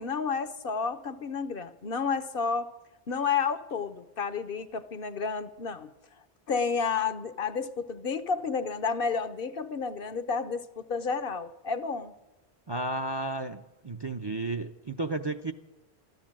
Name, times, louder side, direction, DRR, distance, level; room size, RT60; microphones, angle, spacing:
voice 1, 0.0-2.7 3.1-5.9 6.5-12.1, left 5 dB, 60° left, 12 dB, 1.0 m, -31 dB
voice 2, 12.7-15.5, right 2 dB, 30° right, 8 dB, 0.6 m, -33 dB
14.5 x 12.5 x 7.4 m, 1.0 s
omnidirectional pair, 1.1 m